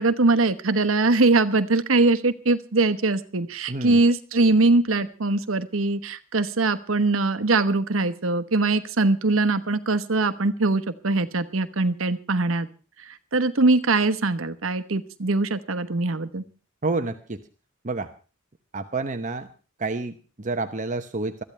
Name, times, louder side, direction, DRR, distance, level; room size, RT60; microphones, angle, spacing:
voice 1, 0.0-12.7 13.0-16.4, right 3 dB, 80° right, 11 dB, 1.1 m, -22 dB
voice 2, 3.7-4.0 16.8-17.4 17.8-18.1 18.7-19.5 19.8-21.4, right 3 dB, 40° right, 7 dB, 1.0 m, -29 dB
22.0 x 14.0 x 3.4 m, 0.35 s
head